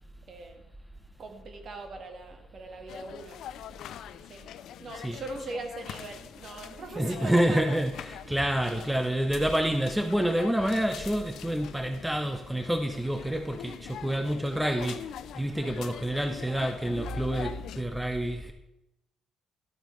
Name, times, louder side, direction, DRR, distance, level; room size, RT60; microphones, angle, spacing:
voice 1, 0.3-0.6 1.2-3.4 4.3-4.5 4.8-7.9 8.7-8.9 16.5-16.7, right 3 dB, 55° right, 1.5 m, -41 dB
sound 1, 2.9-17.8, left 10 dB, 80° left, 0.4 m, -43 dB
voice 2, 7.0-18.5, right 1 dB, 5° right, 0.7 m, -28 dB
12.0 x 7.9 x 3.2 m
cardioid pair, 90°, 0 cm